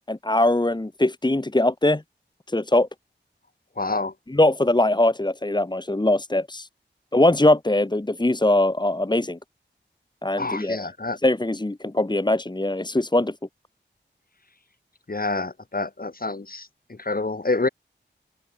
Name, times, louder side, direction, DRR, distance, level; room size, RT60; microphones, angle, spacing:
voice 1, 0.1-2.0 2.5-2.9 4.3-6.7 7.1-9.4 10.2-10.8 11.2-13.3, left 1 dB, 20° left, 2.4 m, -21 dB
voice 2, 3.8-4.1 10.4-11.2 15.1-17.7, left 3 dB, 50° left, 7.8 m, -27 dB
wide cardioid pair, 60°, 19 cm